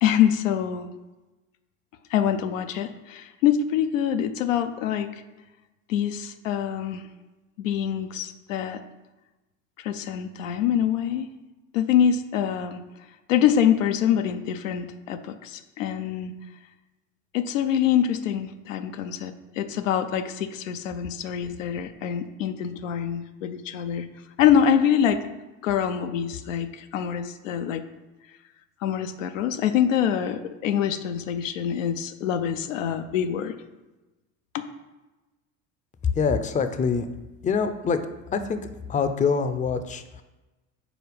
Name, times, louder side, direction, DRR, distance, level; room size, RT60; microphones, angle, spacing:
voice 1, 0.0-0.9 2.1-5.1 5.9-7.0 7.6-8.8 9.8-11.3 11.7-12.8 13.3-16.3 17.3-24.1 24.4-25.2 25.6-27.8 28.8-33.6 34.5-34.6, left 9 dB, 85° left, 8 dB, 0.5 m, -25 dB
voice 2, 36.1-37.1 37.4-38.0 38.3-38.6 38.9-40.2, left 5 dB, 20° left, 10 dB, 0.5 m, -25 dB
5.0 x 4.3 x 5.0 m, 1.1 s
hypercardioid pair, 70°, 38 cm